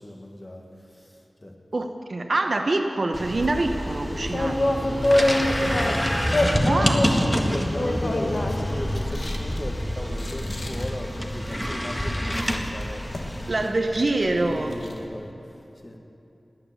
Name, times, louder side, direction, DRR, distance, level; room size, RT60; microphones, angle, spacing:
voice 1, 0.0-1.5 4.3-13.1 14.4-16.0, left 1 dB, 30° left, 2 dB, 1.8 m, -37 dB
voice 2, 1.7-4.7 6.6-7.6 13.5-14.8, right 2 dB, 60° right, 5 dB, 1.0 m, -25 dB
sound 1, 3.1-13.7, equal, 10° left, 1.6 m, -28 dB
sound 2, 3.4-15.0, left 1 dB, 60° left, 1.4 m, -28 dB
18.5 x 9.3 x 7.0 m, 2.8 s
wide cardioid pair, 55°, 0 cm